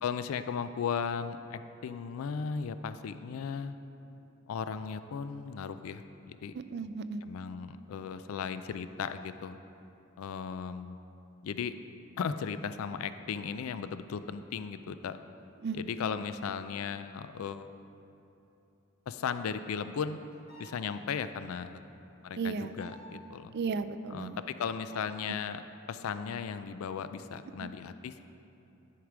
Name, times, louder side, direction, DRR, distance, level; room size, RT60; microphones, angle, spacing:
voice 1, 0.0-3.8 4.5-6.5 7.2-9.6 10.2-11.0 11.4-11.7 12.2-15.2 15.7-17.7 19.1-20.2 20.6-21.8 22.2-23.5 24.1-25.6 25.9-28.2, left 6 dB, 85° left, 11 dB, 0.4 m, -36 dB
voice 2, 6.5-7.2 15.6-15.8 22.4-22.7 23.5-24.4 27.6-27.7, right 5 dB, 55° right, 11 dB, 0.3 m, -34 dB
sound 1, 20.3-21.1 22.8-23.1 24.9-25.4, left 1 dB, 50° left, 1.5 m, -51 dB
11.5 x 4.8 x 4.9 m, 2.9 s
head